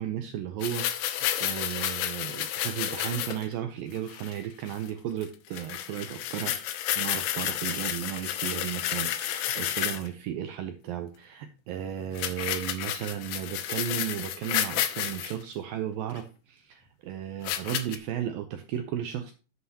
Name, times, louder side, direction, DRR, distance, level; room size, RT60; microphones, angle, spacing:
voice 1, 0.0-6.7 7.0-19.3, right 10 dB, 85° right, 7 dB, 2.0 m, -34 dB
sound 1, 0.6-3.5 4.0-4.4 4.7-4.9 5.2-5.3 5.5-10.1 12.2-15.3 16.2-16.3 17.4-18.0, left 12 dB, 80° left, 2.7 m, -31 dB
11.5 x 7.5 x 2.9 m, 0.34 s
omnidirectional pair, 5.0 m